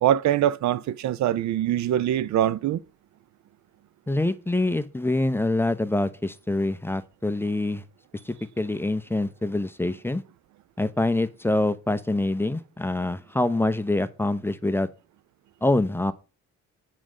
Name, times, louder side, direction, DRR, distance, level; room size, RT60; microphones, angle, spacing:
voice 1, 0.0-2.8, right 11 dB, 65° right, 0.5 m, -23 dB
voice 2, 4.1-7.8 8.3-10.2 10.8-14.9 15.6-16.1, left 2 dB, 5° left, 0.7 m, -25 dB
7.4 x 5.1 x 6.3 m
cardioid pair, 90°, 30 cm